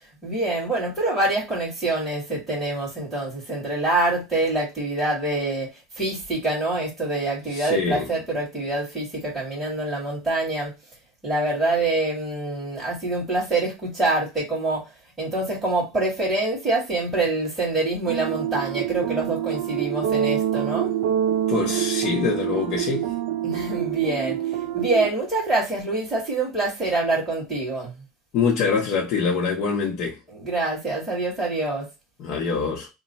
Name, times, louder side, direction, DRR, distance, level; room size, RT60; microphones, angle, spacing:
voice 1, 0.2-10.7 11.2-14.9 15.2-20.9 23.4-27.9 30.3-31.9, right 2 dB, 10° right, 1.9 m, -25 dB
voice 2, 7.5-8.1 21.5-23.1 28.3-30.2 32.2-32.9, left 5 dB, 50° left, 0.8 m, -24 dB
sound 1, 18.1-25.1, right 11 dB, 70° right, 0.5 m, -26 dB
3.0 x 2.3 x 4.1 m
supercardioid pair, 140°, 0 cm